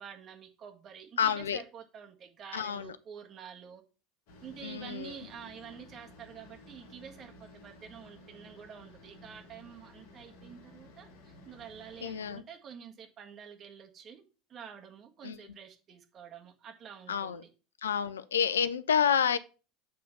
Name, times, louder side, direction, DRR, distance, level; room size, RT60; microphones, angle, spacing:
voice 1, 0.0-3.8 4.4-17.5, right 8 dB, 40° right, 1.6 m, -48 dB
voice 2, 1.2-1.6 2.5-2.9 4.6-5.1 12.0-12.4 15.2-15.4 17.1-17.4 17.8-19.4, left 8 dB, 80° left, 0.5 m, -29 dB
sound 1, 4.3-12.4, left 1 dB, 60° left, 1.7 m, -54 dB
7.5 x 3.8 x 5.4 m
figure-of-eight pair, 75°, 0 cm